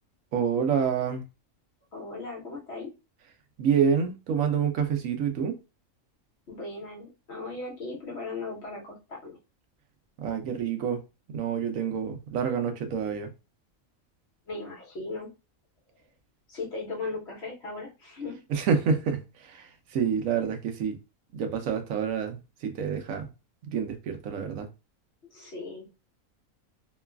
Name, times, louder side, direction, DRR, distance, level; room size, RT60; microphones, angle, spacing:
voice 1, 0.3-1.2 3.6-5.5 10.2-11.0 11.3-13.3 18.5-21.0 21.3-22.4 22.6-23.3 23.7-24.7, right 7 dB, 80° right, 1.0 m, -27 dB
voice 2, 1.9-2.9 6.5-9.4 14.5-15.3 16.5-18.4 25.3-25.9, left 3 dB, 55° left, 1.2 m, -37 dB
3.0 x 2.3 x 2.2 m
omnidirectional pair, 1.4 m